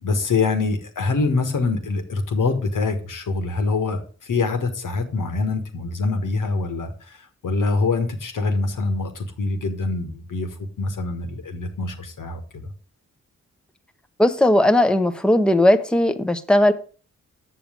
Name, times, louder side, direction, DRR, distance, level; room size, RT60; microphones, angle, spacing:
voice 1, 0.0-7.2 7.4-12.6, left 3 dB, 75° left, 6 dB, 1.6 m, -24 dB
voice 2, 14.2-16.7, left 1 dB, 5° left, 8 dB, 0.9 m, -17 dB
7.9 x 6.7 x 5.1 m, 0.40 s
supercardioid pair, 40°, 32 cm